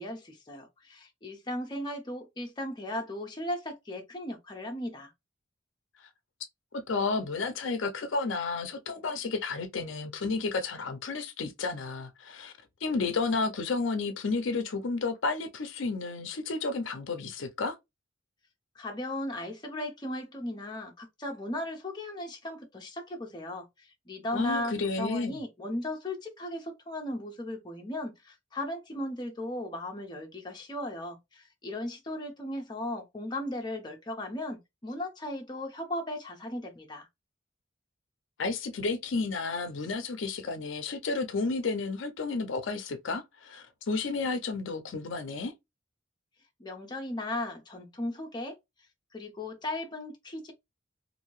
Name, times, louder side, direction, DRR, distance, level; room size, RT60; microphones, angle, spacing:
voice 1, 0.0-5.1 18.7-37.1 46.6-48.6 49.1-50.5, left 1 dB, 25° left, 0.7 m, -36 dB
voice 2, 6.7-12.5 12.8-17.8 24.3-25.4 38.4-45.5, left 3 dB, 75° left, 0.5 m, -32 dB
2.7 x 2.6 x 3.0 m
head